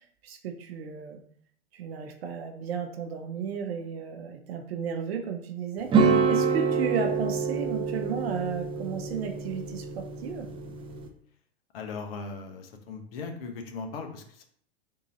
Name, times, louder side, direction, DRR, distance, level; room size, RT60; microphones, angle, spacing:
voice 1, 0.2-1.2 1.7-5.9 6.3-10.5, right 6 dB, 70° right, 4 dB, 0.7 m, -33 dB
sound 1, 5.9-11.1, right 5 dB, 15° right, 0.4 m, -27 dB
voice 2, 11.7-14.5, left 4 dB, 60° left, 4 dB, 0.9 m, -38 dB
3.7 x 2.7 x 4.1 m, 0.62 s
hypercardioid pair, 110°, 33 cm